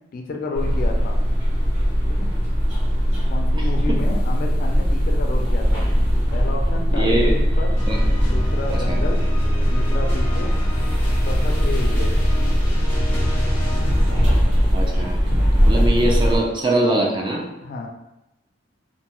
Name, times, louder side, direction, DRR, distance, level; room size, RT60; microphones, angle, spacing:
voice 1, 0.1-1.2 2.1-2.3 3.3-5.9 6.3-7.8 8.2-9.3 9.7-10.5 11.2-12.1 17.6-17.9, left 3 dB, 50° left, 2 dB, 0.3 m, -31 dB
sound 1, 0.5-16.4, equal, 70° right, 1.0 m, -20 dB
voice 2, 3.6-4.0 6.9-7.3 7.9-8.0 8.9-9.0 14.7-15.2 15.7-17.4, right 1 dB, 25° right, -1 dB, 0.4 m, -22 dB
sound 2, 7.8-14.7, equal, 5° left, 0.8 m, -28 dB
2.6 x 2.2 x 2.9 m, 0.92 s
head